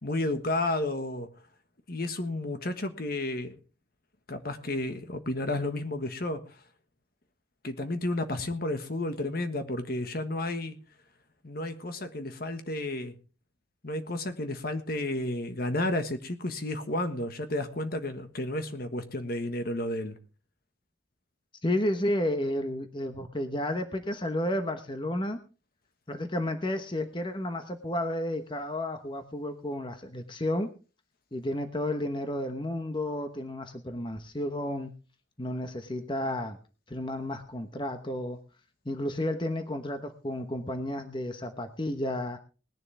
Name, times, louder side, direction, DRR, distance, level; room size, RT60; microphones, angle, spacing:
voice 1, 0.0-1.3 1.9-3.5 4.3-6.4 7.6-10.8 11.4-13.1 13.8-20.2, left 1 dB, 50° left, 8 dB, 1.5 m, -32 dB
voice 2, 21.6-25.4 26.1-30.7 31.3-34.9 35.4-36.6 36.9-38.4 38.8-42.4, left 1 dB, 25° left, 7 dB, 1.1 m, -32 dB
19.5 x 11.0 x 3.4 m, 0.34 s
head